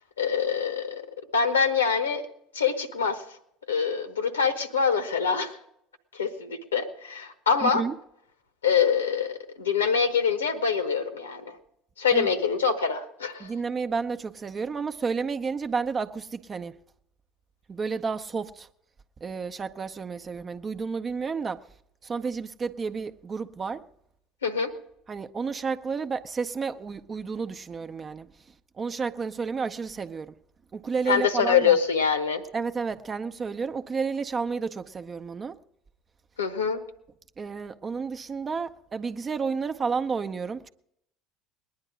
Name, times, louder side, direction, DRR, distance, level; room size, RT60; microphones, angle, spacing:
voice 1, 0.2-1.0 1.3-2.2 2.5-3.2 3.7-5.6 6.1-7.8 8.6-11.6 12.0-13.5 24.4-24.7 31.1-32.4 36.4-36.8, left 6 dB, 80° left, 1.1 m, -25 dB
voice 2, 7.6-7.9 12.1-12.3 13.4-16.7 17.7-18.7 19.2-21.6 22.0-23.8 25.1-28.3 28.8-30.3 30.7-31.8 32.5-35.6 37.4-40.7, right 5 dB, 30° right, 0.7 m, -31 dB
20.0 x 10.5 x 5.0 m
figure-of-eight pair, 65°, 0 cm